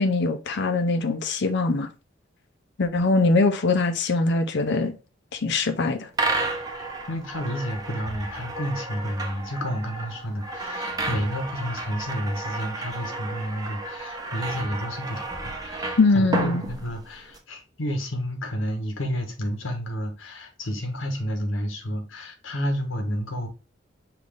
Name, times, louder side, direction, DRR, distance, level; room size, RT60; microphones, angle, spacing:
voice 1, 0.0-1.9 2.8-4.9 5.3-6.1 16.0-16.6, left 3 dB, 60° left, 0.5 m, -22 dB
sound 1, 6.1-17.4, right 2 dB, 20° right, 0.7 m, -32 dB
voice 2, 6.7-23.5, equal, 80° left, 1.1 m, -31 dB
5.7 x 2.5 x 3.4 m
head